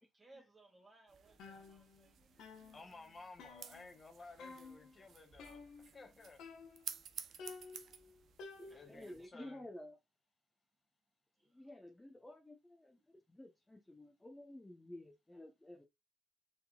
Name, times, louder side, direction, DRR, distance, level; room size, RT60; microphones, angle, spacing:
voice 1, 0.1-2.8 8.7-9.5 11.4-11.5, right 2 dB, 20° right, 2.0 m, -63 dB
sound 1, 1.1-9.3, right 8 dB, 65° right, 0.7 m, -54 dB
sound 2, 1.4-2.1 2.4-4.1 4.4-5.0 5.4-6.1 6.4-7.0 7.4-9.1, left 4 dB, 85° left, 1.2 m, -54 dB
voice 2, 2.7-6.4 8.7-9.6, left 3 dB, 35° left, 1.1 m, -56 dB
voice 3, 8.6-10.0 11.5-15.8, left 1 dB, 15° left, 0.9 m, -53 dB
4.6 x 3.8 x 2.4 m
cardioid pair, 90°, 0 cm